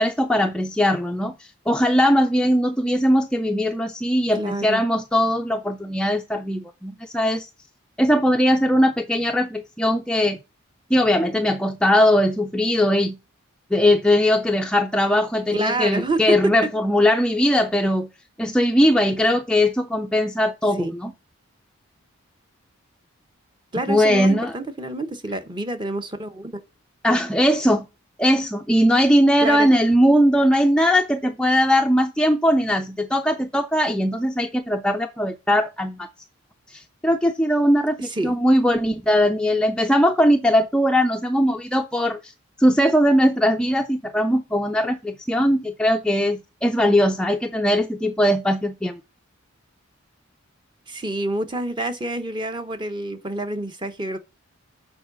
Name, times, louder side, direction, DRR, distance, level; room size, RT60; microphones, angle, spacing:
voice 1, 0.0-7.5 8.0-10.4 10.9-13.2 13.7-18.1 18.4-21.1 23.9-24.5 27.0-27.9 28.2-36.1 36.7-42.3 42.6-49.0, equal, 5° left, 0.3 m, -20 dB
voice 2, 4.3-4.8 15.5-16.4 20.8-20.9 23.7-26.6 29.4-29.7 38.0-38.3 50.9-54.2, right 1 dB, 20° right, 0.7 m, -28 dB
7.1 x 4.6 x 6.7 m
head